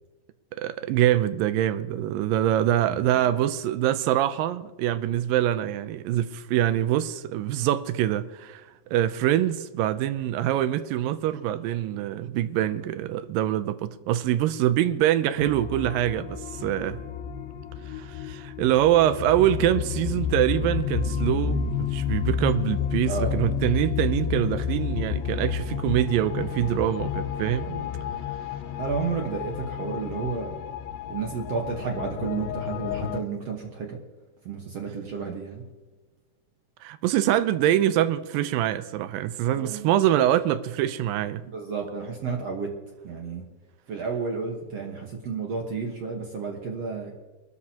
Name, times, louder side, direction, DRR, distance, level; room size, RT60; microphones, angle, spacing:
voice 1, 0.6-8.6 8.9-17.0 17.9-27.7 36.8-41.4, right 12 dB, 80° right, 2.3 m, -24 dB
voice 2, 2.9-3.3 23.1-23.4 26.5-26.8 27.6-28.2 28.8-30.6 31.1-34.0 34.5-35.6 39.5-39.9 41.5-42.7 43.0-43.5 43.9-47.1, right 5 dB, 55° right, 2.0 m, -32 dB
sound 1, 15.4-33.2, left 7 dB, 80° left, 2.4 m, -30 dB
24.5 x 13.0 x 2.9 m
omnidirectional pair, 4.1 m